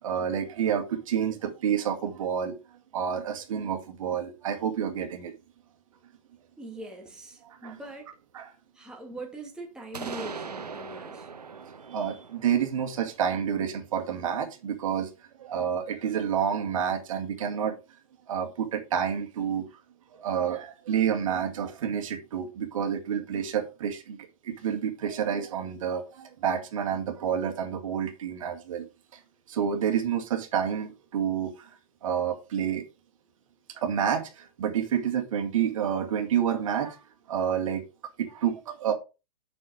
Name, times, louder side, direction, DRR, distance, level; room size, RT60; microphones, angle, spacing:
voice 1, 0.0-2.5 2.9-5.3 7.4-7.8 8.3-8.5 11.9-17.8 18.3-19.6 20.1-24.2 24.4-28.9 29.1-29.2 29.5-31.7 32.0-32.8 33.7-37.0 37.3-37.8 38.2-38.9, right 8 dB, 55° right, 2.2 m, -29 dB
voice 2, 6.6-8.1 8.7-11.3, right 1 dB, 5° right, 2.3 m, -42 dB
sound 1, 9.9-13.7, right 5 dB, 85° right, 1.1 m, -41 dB
6.4 x 6.4 x 5.1 m
hypercardioid pair, 125°, 20 cm